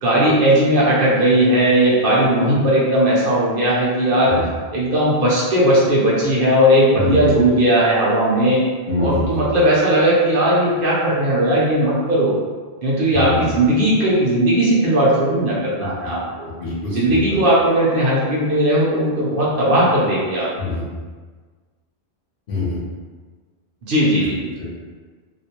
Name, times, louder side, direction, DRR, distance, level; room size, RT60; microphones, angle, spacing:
voice 1, 0.0-4.3 4.7-8.6 9.0-12.3 12.8-16.5 16.9-20.5 23.8-24.5, right 1 dB, 60° right, -6 dB, 0.8 m, -17 dB
voice 2, 8.9-9.4 13.1-13.5 15.8-16.1 16.6-17.2 20.6-20.9 22.5-22.8 24.2-24.3 24.6-24.7, left 3 dB, 60° left, -6 dB, 0.8 m, -25 dB
2.4 x 2.1 x 2.7 m, 1.5 s
omnidirectional pair, 1.1 m